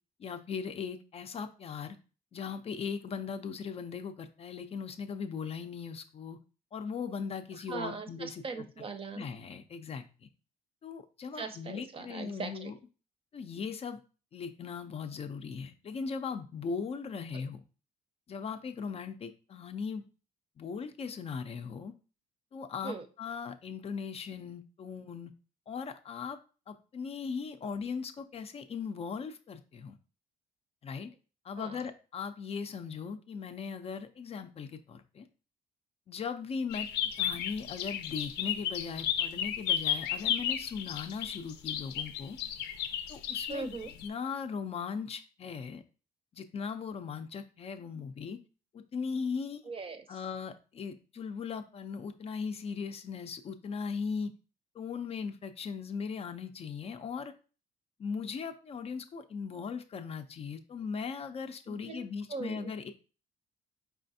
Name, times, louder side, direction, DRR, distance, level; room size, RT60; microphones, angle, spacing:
voice 1, 0.2-2.0 2.3-6.4 6.7-8.4 9.2-10.0 10.8-12.7 13.3-14.0 14.3-17.6 18.3-20.0 20.6-22.0 22.5-25.3 25.7-26.4 26.7-30.0 30.8-31.1 31.4-35.3 36.1-42.4 43.1-43.7 44.0-45.8 46.3-48.4 48.7-49.6 50.1-54.3 54.7-57.3 58.0-62.9, left 5 dB, 35° left, 8 dB, 0.5 m, -38 dB
voice 2, 7.7-9.2 11.3-12.7 17.3-17.4 22.8-23.1 31.6-31.8 43.5-43.9 49.6-50.2 61.7-62.7, right 4 dB, 35° right, 8 dB, 0.6 m, -40 dB
sound 1, 36.7-44.1, left 10 dB, 90° left, 0.6 m, -33 dB
4.8 x 3.3 x 2.6 m, 0.35 s
cardioid pair, 110°, 17 cm